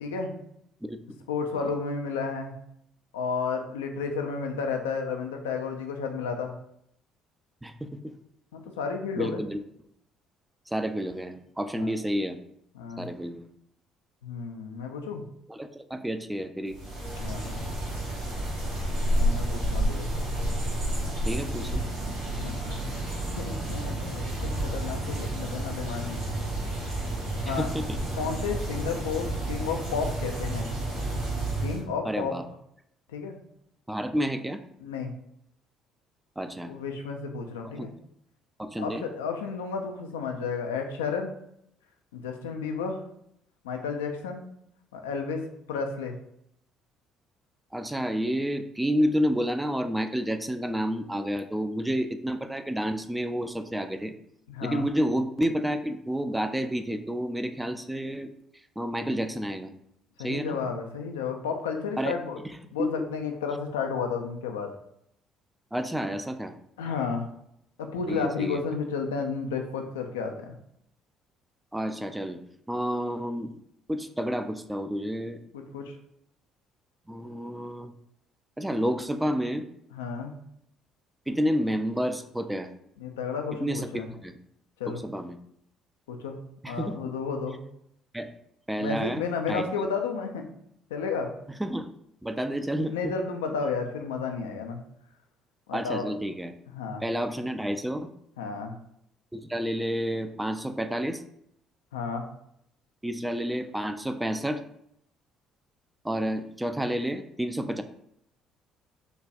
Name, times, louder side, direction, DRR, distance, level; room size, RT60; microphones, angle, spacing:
voice 1, 0.0-0.3 1.3-2.5 3.1-6.6 8.5-9.4 11.8-11.9 12.7-13.1 14.2-15.2 17.2-17.6 19.1-20.1 22.3-23.1 23.3-26.2 27.5-27.7 28.1-30.7 31.6-32.3 33.1-33.4 34.8-35.1 36.6-37.9 38.8-41.3 42.1-43.0 43.6-44.4 44.9-46.2 54.5-54.9 60.2-62.4 62.7-64.7 66.8-67.3 67.8-70.5 75.5-75.9 79.9-80.3 83.0-84.1 84.8-85.0 86.1-86.4 86.7-87.6 88.8-90.4 90.9-91.3 92.9-94.8 95.7-96.1 96.7-97.0 98.4-98.8 101.9-102.3, left 5 dB, 90° left, 4 dB, 0.4 m, -32 dB
voice 2, 0.8-1.2 1.5-1.7 7.6-8.1 9.2-9.6 10.7-12.4 13.0-13.5 15.5-16.8 21.2-21.8 27.5-28.0 32.1-32.4 33.9-34.6 36.4-36.7 37.8-37.9 38.6-39.0 47.7-54.1 54.6-58.3 58.8-59.7 60.2-60.6 62.0-62.2 62.8-62.9 65.7-66.5 68.1-68.6 71.7-72.4 72.7-73.5 73.9-75.4 77.1-77.9 78.6-79.6 81.3-82.7 83.6-83.9 84.2-84.4 85.0-85.4 86.6-87.0 88.1-88.3 88.7-89.6 91.6-91.9 92.2-93.1 95.7-96.5 97.0-98.1 99.3-101.2 103.0-104.6 106.0-107.8, equal, 10° right, 8 dB, 0.3 m, -30 dB
sound 1, 16.7-31.8, right 1 dB, 85° right, 1.3 m, -30 dB
4.0 x 2.2 x 2.4 m, 0.73 s
hypercardioid pair, 60°, 0 cm